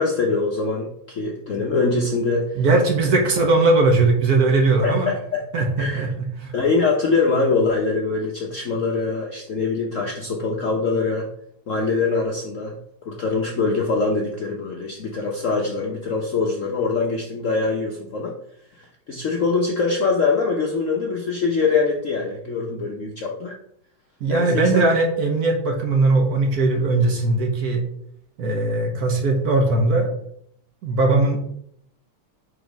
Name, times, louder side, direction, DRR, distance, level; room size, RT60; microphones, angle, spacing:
voice 1, 0.0-2.6 4.8-5.4 5.8-6.1 6.5-11.3 11.7-12.7 13.0-18.4 18.7-23.6 24.3-24.9, left 4 dB, 60° left, -1 dB, 0.8 m, -23 dB
voice 2, 2.6-5.1 5.5-6.5 24.2-27.8 28.4-30.1 30.8-31.4, right 3 dB, 55° right, 2 dB, 1.2 m, -19 dB
4.9 x 4.4 x 5.1 m, 0.70 s
omnidirectional pair, 2.2 m